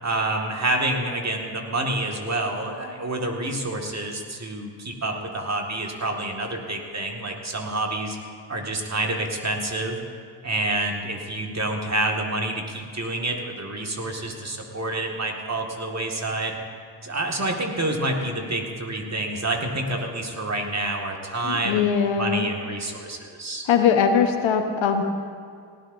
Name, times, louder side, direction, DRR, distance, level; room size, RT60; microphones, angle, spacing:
voice 1, 0.0-8.2 8.5-10.0 10.4-16.6 17.0-21.8 22.2-23.7, right 2 dB, 35° right, 1 dB, 2.0 m, -28 dB
voice 2, 21.4-22.5 23.7-25.0, left 7 dB, 70° left, 6 dB, 1.2 m, -21 dB
18.5 x 14.5 x 2.7 m, 2.2 s
supercardioid pair, 45°, 48 cm